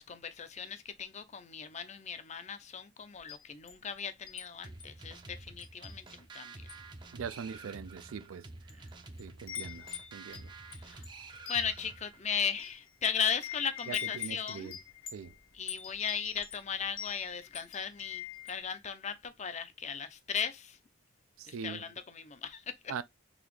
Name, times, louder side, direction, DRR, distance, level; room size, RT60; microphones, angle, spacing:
voice 1, 0.0-6.7 8.7-8.8 10.8-11.0 11.5-14.7 15.5-20.8 21.5-22.9, left 7 dB, 35° left, 0.5 m, -37 dB
Wind chime, 3.2-4.5 4.8-5.0 5.6-6.4 6.6-7.0 7.7-7.8 8.5-8.9 9.1-18.6, left 10 dB, 75° left, 1.1 m, -44 dB
sound 1, 4.6-12.3, right 3 dB, 20° right, 0.5 m, -49 dB
voice 2, 7.1-8.8 9.2-10.5 10.9-11.0 13.9-14.8 15.1-15.3 21.4-21.9 22.9-23.0, right 6 dB, 85° right, 0.4 m, -42 dB
4.0 x 3.3 x 3.0 m
head